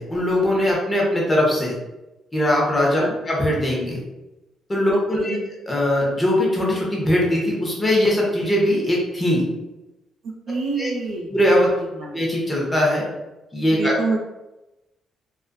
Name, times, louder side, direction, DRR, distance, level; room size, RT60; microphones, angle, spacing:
voice 1, 0.0-1.7 2.3-4.0 4.7-5.4 5.7-9.5 10.8-10.9 11.3-11.7 12.1-13.0 13.5-13.9, left 1 dB, 20° left, -3 dB, 0.8 m, -20 dB
voice 2, 4.9-5.4 10.5-11.3 11.8-12.2 13.7-14.2, right 3 dB, 75° right, 1 dB, 0.5 m, -27 dB
2.4 x 2.4 x 2.3 m, 1.0 s
cardioid pair, 90°, 0 cm